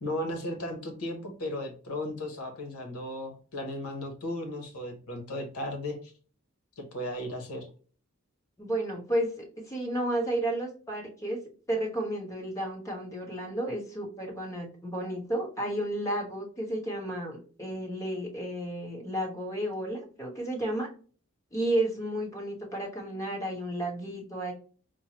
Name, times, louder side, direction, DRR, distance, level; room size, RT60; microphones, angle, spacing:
voice 1, 0.0-6.1 6.8-7.7, left 1 dB, 85° left, 4 dB, 0.9 m, -35 dB
voice 2, 8.6-11.4 11.7-20.9 21.5-24.5, right 1 dB, 15° left, -1 dB, 1.0 m, -32 dB
4.5 x 2.1 x 2.9 m, 0.40 s
head